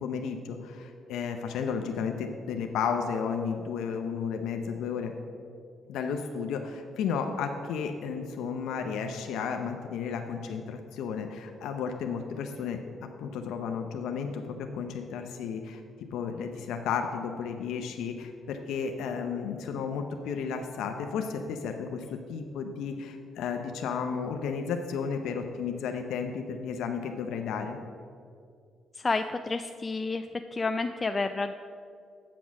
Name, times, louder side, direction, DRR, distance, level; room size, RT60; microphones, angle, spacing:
voice 1, 0.0-5.1 5.9-12.8 13.2-15.8 16.1-27.8, left 6 dB, 85° left, 5 dB, 0.6 m, -33 dB
voice 2, 28.9-30.3 30.5-31.5, left 3 dB, 30° left, 7 dB, 0.3 m, -30 dB
8.6 x 6.0 x 6.1 m, 2.4 s
cardioid pair, 90°, 0 cm